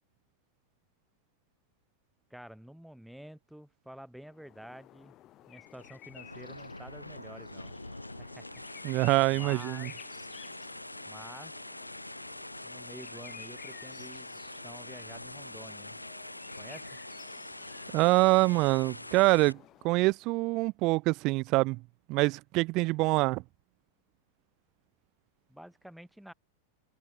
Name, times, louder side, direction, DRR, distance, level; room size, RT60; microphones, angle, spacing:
voice 1, 2.3-5.2 5.5-7.8 8.2-8.6 9.3-9.9 11.0-11.6 12.6-16.0 16.6-17.0 25.5-26.3, equal, ahead, 6.7 m, -49 dB
sound 1, 4.2-20.2, left 14 dB, 35° left, 4.2 m, -54 dB
sound 2, 5.7-19.5, left 1 dB, 85° left, 1.9 m, -44 dB
voice 2, 8.8-9.9 17.9-19.6 19.8-21.8 22.1-23.4, right 23 dB, 40° right, 0.4 m, -25 dB
figure-of-eight pair, 90°, 0 cm